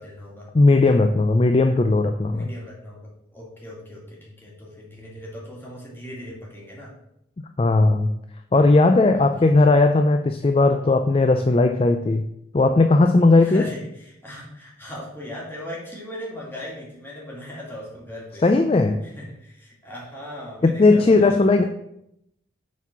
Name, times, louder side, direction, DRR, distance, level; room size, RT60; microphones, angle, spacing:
voice 1, 0.0-0.5 2.3-6.9 9.1-9.5 13.4-18.4 19.0-21.6, left 1 dB, 10° left, -5 dB, 2.1 m, -38 dB
voice 2, 0.5-2.5 7.6-8.1 8.5-12.2 12.5-13.7 18.4-19.0 20.6-21.6, left 3 dB, 30° left, 6 dB, 0.3 m, -17 dB
7.1 x 4.1 x 5.8 m, 0.79 s
head